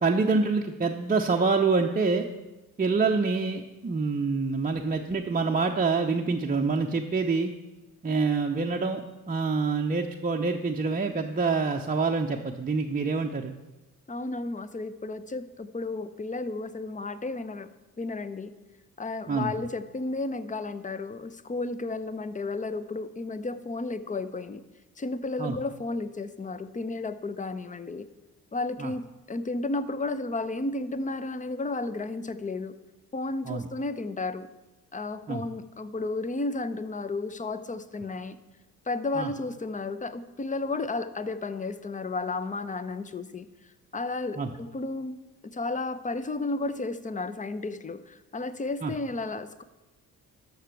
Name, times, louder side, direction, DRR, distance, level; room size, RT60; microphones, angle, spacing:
voice 1, 0.0-2.2 2.8-7.5 8.0-9.0 9.3-13.6 19.3-19.5 25.4-25.6 28.8-28.9 33.5-33.7 35.3-35.5 39.2-39.3 44.4-44.5 48.8-48.9, right 4 dB, 20° right, 1 dB, 0.7 m, -26 dB
voice 2, 14.1-17.7 18.0-18.5 19.0-24.6 25.0-28.1 28.5-32.7 33.1-34.5 34.9-38.4 38.9-43.5 43.9-45.2 45.4-49.6, left 3 dB, 15° left, 13 dB, 0.7 m, -33 dB
12.5 x 6.7 x 4.6 m, 1.1 s
hypercardioid pair, 50°, 45 cm